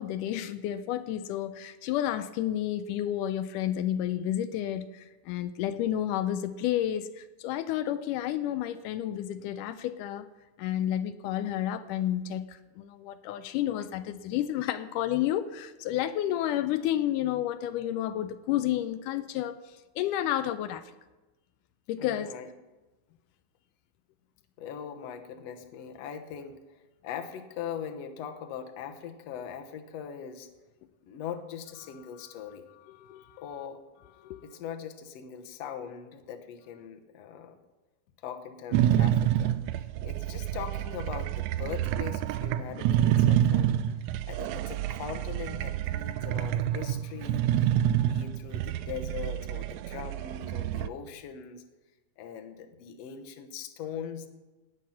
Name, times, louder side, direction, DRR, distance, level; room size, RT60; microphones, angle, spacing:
voice 1, 0.0-10.3 10.6-19.5 20.0-20.9 21.9-22.3 33.0-33.3 34.2-34.4, left 12 dB, 85° left, 11 dB, 2.1 m, -31 dB
voice 2, 22.0-22.5 24.6-30.5 31.0-32.6 33.4-33.8 34.4-37.6 38.2-43.8 44.2-47.7 48.0-51.6 52.2-54.3, left 8 dB, 60° left, 5 dB, 2.0 m, -41 dB
sound 1, 38.7-50.9, right 11 dB, 80° right, 1.6 m, -28 dB
17.5 x 9.3 x 5.8 m, 1.1 s
omnidirectional pair, 3.6 m